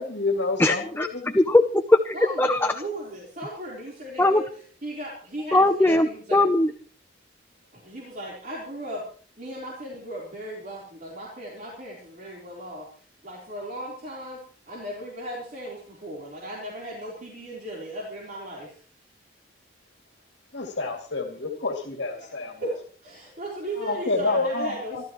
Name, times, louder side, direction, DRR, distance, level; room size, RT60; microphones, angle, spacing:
voice 1, 0.0-1.4 20.5-22.6 23.8-25.0, left 3 dB, 65° left, 2 dB, 2.7 m, -28 dB
voice 2, 0.6-1.1 1.3-2.7 4.2-4.4 5.5-6.7, left 2 dB, 10° left, 7 dB, 0.6 m, -20 dB
voice 3, 2.1-4.5 4.8-6.4 7.7-9.0 9.4-12.8 13.2-14.4 14.7-18.8 22.6-22.8 23.0-25.1, right 1 dB, 45° right, -3 dB, 4.0 m, -36 dB
26.5 x 13.0 x 3.1 m, 0.43 s
head